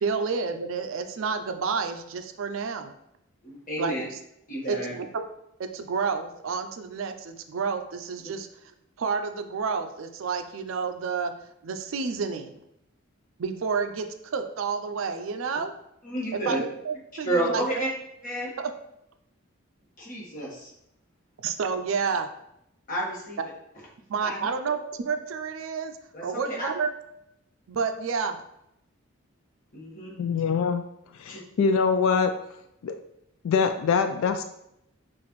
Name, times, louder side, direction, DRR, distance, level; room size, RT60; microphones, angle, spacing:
voice 1, 0.0-2.9 3.8-3.9 4.7-5.1 5.6-8.5 9.0-11.3 11.6-12.5 13.4-14.1 14.3-15.7 16.3-17.6 21.4-22.3 24.1-25.9 26.2-26.9 27.7-28.4, right 5 dB, 70° right, 7 dB, 0.4 m, -29 dB
voice 2, 3.4-4.0 4.5-4.9 16.0-16.6 17.2-17.9 18.2-18.5 20.0-20.7 22.9-23.4 24.2-24.5 26.1-26.7 29.7-30.1 31.3-31.4, right 1 dB, 40° left, -4 dB, 1.3 m, -30 dB
voice 3, 30.2-30.8 31.2-32.3 32.8-32.9 33.4-34.4, left 5 dB, 70° left, 7 dB, 0.3 m, -23 dB
5.7 x 2.5 x 3.0 m, 0.80 s
head